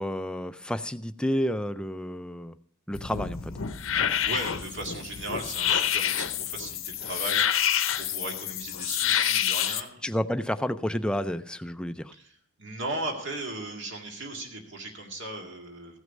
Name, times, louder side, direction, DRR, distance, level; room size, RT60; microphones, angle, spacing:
voice 1, 0.0-2.5 2.9-3.5 10.0-12.1, equal, 5° left, 10 dB, 0.3 m, -30 dB
sound 1, 2.9-9.8, left 9 dB, 65° left, 0.7 m, -28 dB
voice 2, 4.2-10.0 12.1-16.0, right 2 dB, 60° right, 2 dB, 2.0 m, -37 dB
15.0 x 6.4 x 5.2 m, 0.62 s
head